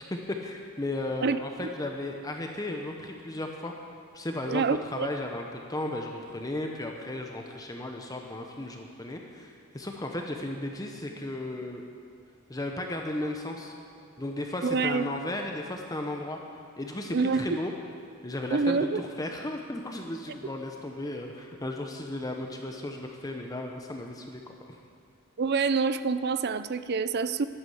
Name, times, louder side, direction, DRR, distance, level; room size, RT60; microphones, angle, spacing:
voice 1, 0.1-3.7 4.1-11.8 12.5-13.7 14.2-16.4 16.8-17.7 18.2-24.5, left 1 dB, 15° left, 2 dB, 0.9 m, -35 dB
voice 2, 1.2-1.7 4.5-5.1 14.6-15.0 17.1-17.6 18.5-19.0 25.4-27.5, right 4 dB, 50° right, 13 dB, 0.5 m, -27 dB
12.0 x 11.5 x 7.9 m, 2.4 s
head